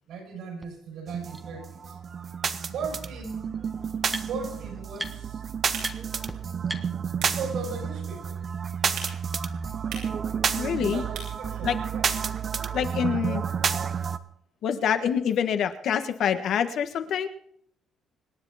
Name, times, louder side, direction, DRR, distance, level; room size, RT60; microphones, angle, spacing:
voice 1, 0.1-2.0 2.7-3.5 4.2-5.4 7.2-8.4 10.8-12.1, right 4 dB, 65° right, 3 dB, 6.6 m, -37 dB
sound 1, 0.6-0.7 1.3-1.4 2.7-2.8 3.1-4.6 4.9-5.4 5.8-6.0 6.3-6.4 6.7-7.7, right 1 dB, 5° right, 1.3 m, -38 dB
sound 2, 1.1-14.2, right 7 dB, 35° right, 0.9 m, -30 dB
sound 3, 5.5-12.4, right 5 dB, 85° right, 6.8 m, -45 dB
voice 2, 10.6-11.0 11.6-11.7 12.7-13.4 14.6-17.3, left 8 dB, 55° left, 8 dB, 1.5 m, -26 dB
26.0 x 10.0 x 4.2 m, 0.69 s
cardioid pair, 155°, 0 cm